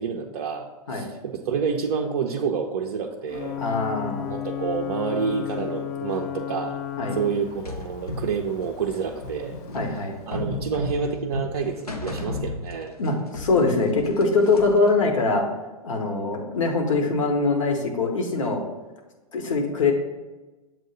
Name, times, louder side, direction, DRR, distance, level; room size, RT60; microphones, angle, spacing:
voice 1, 0.0-3.6 4.3-6.8 7.1-9.6 10.3-12.9, right 6 dB, 45° right, 1 dB, 0.5 m, -28 dB
Ocean / Boat Water vehicle / Alarm, 3.3-10.8, left 10 dB, 30° left, 0.4 m, -35 dB
voice 2, 3.6-4.3 7.0-7.2 9.7-10.2 13.0-15.4 15.8-18.6 19.3-19.9, left 3 dB, 60° left, 2 dB, 1.2 m, -23 dB
sound 1, 7.6-13.1 13.3-14.9, left 2 dB, 85° left, 0.8 m, -33 dB
7.3 x 2.7 x 5.6 m, 1.2 s
figure-of-eight pair, 110°, 19 cm